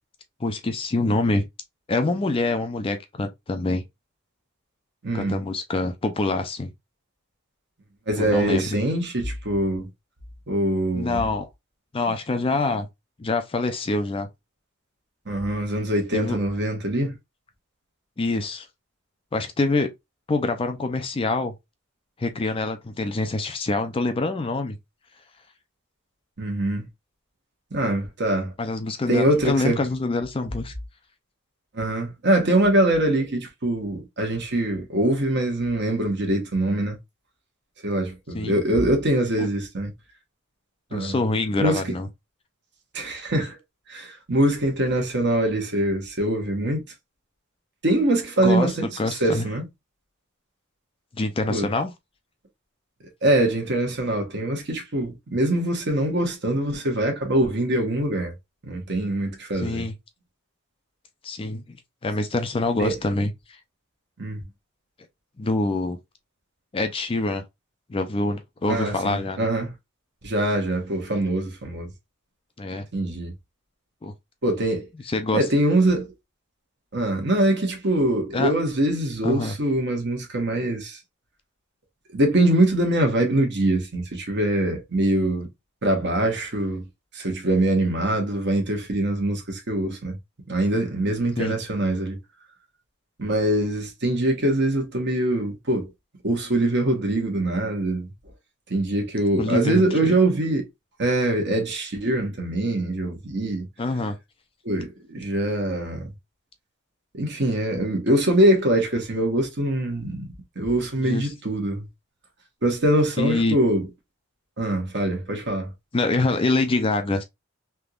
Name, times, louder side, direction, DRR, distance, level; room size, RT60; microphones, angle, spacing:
voice 1, 0.4-1.4 1.9-3.8 5.1-6.7 8.2-8.7 11.0-11.5 11.9-12.9 13.2-14.3 16.1-16.4 18.2-18.7 19.3-19.9 20.3-21.5 22.2-24.8 27.8-27.9 28.6-30.7 38.3-38.6 39.4-39.5 40.9-42.1 48.4-48.7 49.0-49.5 51.1-51.9 59.5-59.9 61.2-61.8 62.0-63.3 65.4-66.0 66.7-67.4 67.9-69.5 72.6-72.9 74.0-74.1 75.0-75.5 78.3-78.5 79.2-79.5 91.4-91.5 99.4-100.2 103.8-104.2 111.0-111.3 113.2-113.6 115.9-117.2, left 2 dB, 25° left, 0.4 m, -25 dB
voice 2, 5.0-5.4 8.1-9.9 10.5-11.2 15.3-17.1 26.4-26.9 27.7-28.5 29.1-29.8 31.7-37.0 37.8-39.9 40.9-41.2 41.6-41.8 42.9-43.6 43.9-46.8 47.8-49.6 51.5-51.7 53.2-58.3 58.6-59.8 62.8-62.9 64.2-64.4 68.7-69.7 70.2-71.9 72.9-73.3 74.4-74.9 75.3-76.1 76.9-81.0 82.1-85.5 85.8-86.8 87.1-90.2 90.5-92.2 93.2-95.9 96.2-98.1 98.7-100.6 101.0-103.7 104.6-106.1 107.1-111.9 112.6-113.8 114.6-115.7, right 1 dB, 55° right, 1.2 m, -23 dB
3.4 x 2.9 x 2.4 m
head